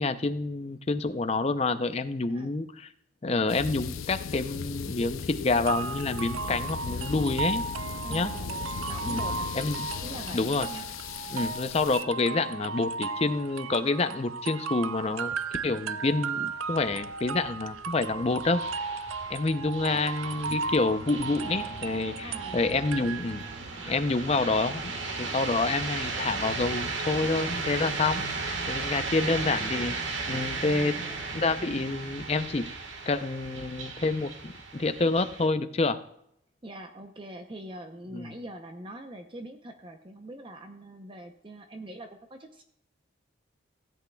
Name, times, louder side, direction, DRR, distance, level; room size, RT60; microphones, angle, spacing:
voice 1, 0.0-2.9 3.2-7.6 8.1-8.3 9.1-9.3 9.5-9.9 10.3-10.7 11.3-15.4 15.6-18.6 19.3-23.4 23.9-24.9 25.2-28.2 28.7-31.0 31.3-32.7 33.1-36.0 38.1-38.3, left 3 dB, 30° left, 10 dB, 0.5 m, -28 dB
sound 1, 3.5-12.0, left 6 dB, 90° left, 0.5 m, -37 dB
sound 2, 5.7-23.6, right 4 dB, 85° right, 0.4 m, -35 dB
voice 2, 8.0-9.5 10.0-10.9 22.2-22.9 29.2-29.9 30.6-31.4 36.6-42.6, right 1 dB, 25° right, 5 dB, 0.6 m, -44 dB
sound 3, 16.5-35.5, right 3 dB, 70° right, 1.4 m, -36 dB
16.0 x 8.3 x 2.3 m, 0.72 s
head